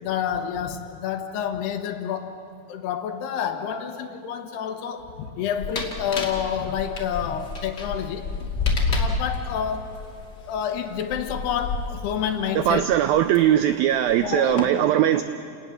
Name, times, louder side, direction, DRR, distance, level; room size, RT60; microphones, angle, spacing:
voice 1, 0.0-2.4 2.7-8.3 8.9-9.9 10.5-12.9 14.2-14.8, left 8 dB, 75° left, 7 dB, 3.2 m, -29 dB
sound 1, 5.6-13.4 14.1-14.6, left 3 dB, 30° left, 2.5 m, -29 dB
voice 2, 12.6-15.2, right 11 dB, 85° right, 10 dB, 2.1 m, -20 dB
29.0 x 19.5 x 7.4 m, 2.6 s
omnidirectional pair, 4.9 m